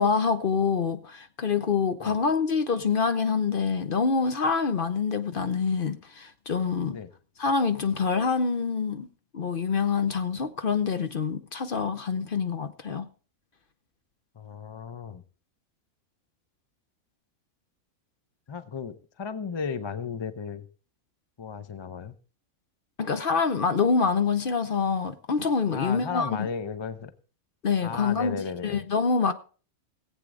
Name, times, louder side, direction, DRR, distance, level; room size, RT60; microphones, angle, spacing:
voice 1, 0.0-7.0 7.4-9.1 9.3-13.1 23.0-26.5 27.6-29.3, left 5 dB, 50° left, 0.8 m, -26 dB
voice 2, 14.4-15.2 18.5-20.7 21.4-22.2 25.7-27.1 27.8-28.8, left 6 dB, 30° left, 0.5 m, -35 dB
18.5 x 8.2 x 3.7 m
omnidirectional pair, 1.4 m